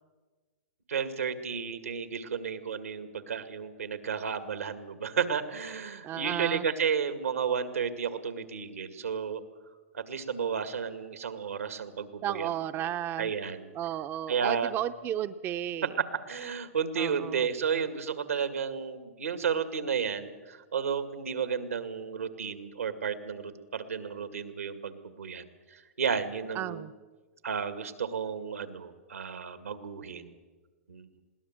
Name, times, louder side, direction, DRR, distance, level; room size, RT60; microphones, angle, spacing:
voice 1, 0.9-9.4 9.9-12.9 13.2-13.7 14.3-14.7 16.0-26.9 27.4-30.3 30.9-31.1, right 6 dB, 85° right, 10 dB, 2.1 m, -32 dB
voice 2, 6.0-6.6 12.2-13.3 13.7-15.9 17.0-17.3 26.6-26.9, right 11 dB, 30° right, 11 dB, 0.6 m, -33 dB
21.5 x 17.0 x 7.6 m, 1.3 s
hypercardioid pair, 115°, 7 cm